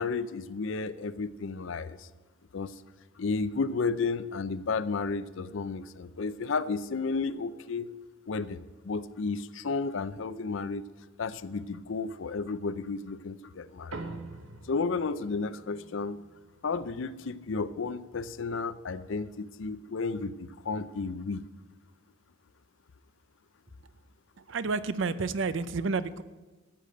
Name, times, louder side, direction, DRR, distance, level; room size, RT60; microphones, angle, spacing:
voice 1, 0.0-2.1 2.5-2.7 3.2-7.9 8.3-10.8 11.2-14.0 14.7-16.2 16.6-21.4, left 4 dB, 65° left, 15 dB, 0.5 m, -32 dB
sound 1, 13.9-18.6, right 2 dB, 85° right, 1.2 m, -46 dB
voice 2, 24.4-26.2, right 4 dB, 65° right, 15 dB, 0.6 m, -30 dB
13.5 x 6.8 x 7.7 m, 1.3 s
head